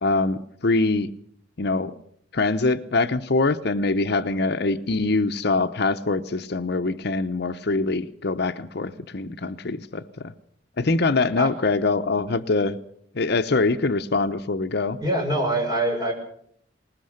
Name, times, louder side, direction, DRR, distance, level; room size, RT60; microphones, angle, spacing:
voice 1, 0.0-1.1 1.6-1.9 2.3-10.3 10.8-12.8 13.1-15.0, left 3 dB, 60° left, 9 dB, 0.8 m, -24 dB
voice 2, 15.0-16.1, right 1 dB, 20° right, 0 dB, 5.9 m, -24 dB
20.5 x 19.5 x 6.5 m, 0.67 s
head